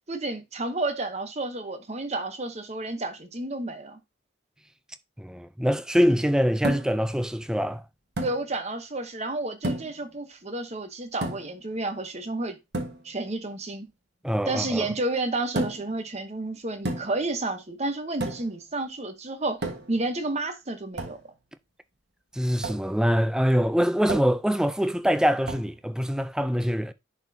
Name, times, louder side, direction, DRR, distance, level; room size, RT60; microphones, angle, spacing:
voice 1, 0.1-4.0 8.2-12.6 13.0-13.9 14.5-19.6 19.9-21.2, right 2 dB, 35° right, 0.9 m, -31 dB
voice 2, 5.2-7.8 14.2-14.9 22.3-26.9, equal, 5° right, 0.3 m, -24 dB
sound 1, 6.6-7.1 8.2-8.4 9.6-10.0 11.2-11.6 12.7-13.0 15.6-15.9 16.9-17.3 18.2-18.6 19.6-20.0 21.0-21.2 22.6-22.9 24.1-24.4 25.5-25.7, right 1 dB, 55° right, 1.4 m, -31 dB
10.5 x 4.2 x 2.7 m
head